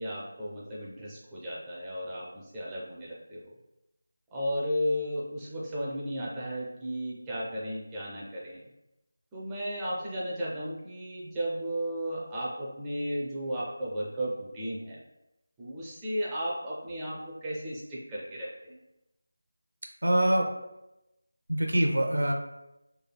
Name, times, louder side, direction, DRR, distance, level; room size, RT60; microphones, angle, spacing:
voice 1, 0.0-3.5 4.3-8.6 9.3-15.0 15.6-18.8, equal, 10° right, -7 dB, 0.4 m, -34 dB
voice 2, 20.0-20.5 21.5-22.3, right 1 dB, 85° right, 2 dB, 0.5 m, -24 dB
3.2 x 2.2 x 2.2 m, 0.93 s
figure-of-eight pair, 170°, 0 cm